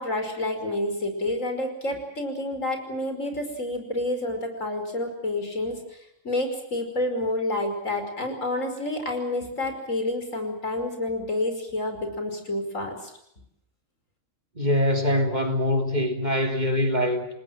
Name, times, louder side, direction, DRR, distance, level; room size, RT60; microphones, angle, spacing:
voice 1, 0.0-5.8 6.2-13.1, left 1 dB, 90° left, 5.6 m, -29 dB
voice 2, 14.5-17.3, left 1 dB, 35° right, 3.3 m, -23 dB
28.5 x 20.0 x 7.6 m
omnidirectional pair, 1.3 m